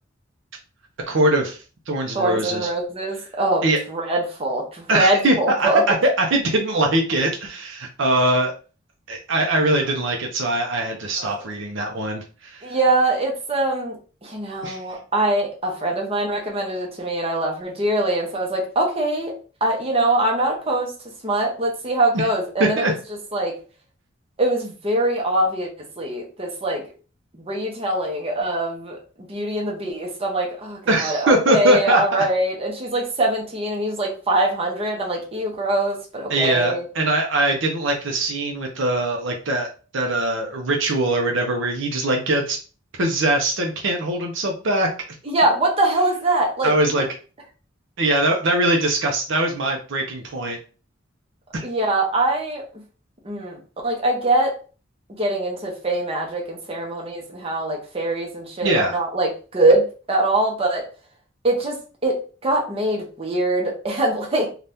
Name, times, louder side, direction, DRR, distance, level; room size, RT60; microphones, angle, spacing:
voice 1, 1.1-1.6 1.9-2.7 3.6-3.8 4.9-8.5 9.1-12.7 14.6-14.8 22.1-22.3 22.6-22.9 30.9-32.0 36.3-39.7 39.9-42.6 43.0-44.9 46.6-47.0 48.0-50.6 51.5-51.7 58.6-59.0, right 1 dB, 65° right, 1 dB, 0.6 m, -21 dB
voice 2, 2.1-5.8 11.2-11.4 12.6-19.3 19.6-20.9 21.2-22.9 23.3-23.6 24.4-25.7 26.0-26.8 27.5-29.0 29.3-36.8 45.3-47.0 51.6-52.6 53.2-54.5 55.2-60.8 61.4-61.8 62.0-64.5, right 1 dB, 30° right, 0 dB, 0.8 m, -23 dB
2.7 x 2.4 x 3.4 m, 0.36 s
head